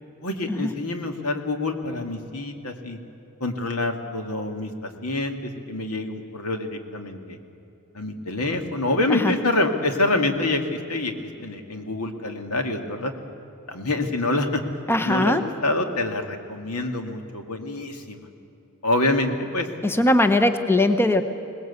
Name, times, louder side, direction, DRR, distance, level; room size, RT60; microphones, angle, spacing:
voice 1, 0.2-3.0 3.4-7.4 7.9-11.1 11.4-13.1 13.7-14.6 15.0-15.3 15.6-18.3 18.8-19.7, left 2 dB, 85° left, 5 dB, 2.0 m, -26 dB
voice 2, 14.9-15.5 19.8-21.2, left 1 dB, 10° left, 9 dB, 0.9 m, -20 dB
22.0 x 19.0 x 8.2 m, 2.8 s
head